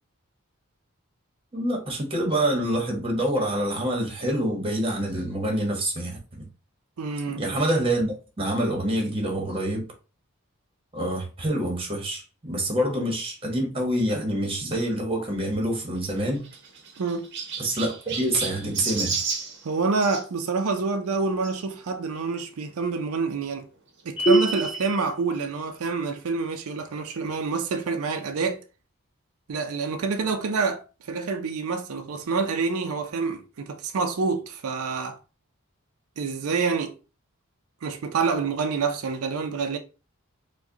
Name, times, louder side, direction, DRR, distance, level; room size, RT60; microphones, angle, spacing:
voice 1, 1.5-6.5 7.3-9.8 10.9-16.4 17.6-19.2, right 1 dB, 25° right, 1.0 m, -26 dB
voice 2, 7.0-7.4 17.0-17.3 19.6-23.7 24.0-28.6 29.5-35.2 36.2-36.9 37.8-39.8, right 4 dB, 85° right, 0.5 m, -27 dB
Chirp tweet, 15.9-20.2 21.4-21.6 22.3-22.4 22.6-22.7 24.0-24.1, right 5 dB, 55° right, 0.7 m, -33 dB
sound 1, 24.2-25.0, right 2 dB, 30° left, 1.6 m, -22 dB
4.7 x 2.2 x 2.8 m
head